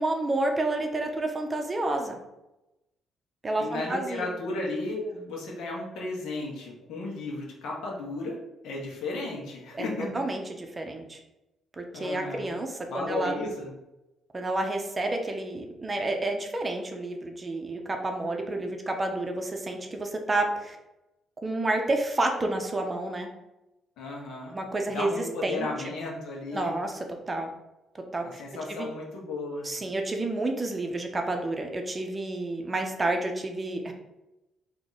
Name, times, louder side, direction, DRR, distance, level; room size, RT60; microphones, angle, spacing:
voice 1, 0.0-2.2 3.4-4.3 9.7-9.9 10.1-11.2 11.7-13.3 14.3-20.8 21.4-23.3 24.5-25.7 26.5-26.9 27.3-27.5 28.1-28.4 28.8-28.9 29.6-33.9, right 2 dB, 20° right, 3 dB, 0.5 m, -30 dB
voice 2, 3.6-8.4 8.6-10.1 11.9-12.6 12.8-13.7 24.0-24.6 24.9-26.7 28.2-29.7, left 2 dB, 85° left, -2 dB, 1.2 m, -34 dB
3.6 x 2.8 x 4.0 m, 0.95 s
cardioid pair, 140°, 0 cm